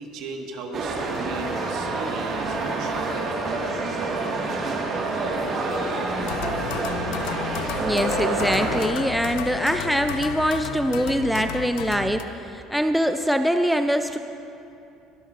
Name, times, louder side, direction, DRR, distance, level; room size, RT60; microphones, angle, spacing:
voice 1, 0.0-3.3, right 3 dB, 70° right, 2 dB, 1.6 m, -36 dB
sound 1, 0.7-8.9, right 3 dB, 45° right, 1.8 m, -27 dB
sound 2, 6.2-12.2, left 9 dB, 85° left, 0.6 m, -33 dB
voice 2, 7.8-12.2 12.5-14.2, equal, ahead, 7 dB, 0.4 m, -23 dB
22.0 x 12.5 x 2.5 m, 2.7 s
cardioid pair, 130°, 0 cm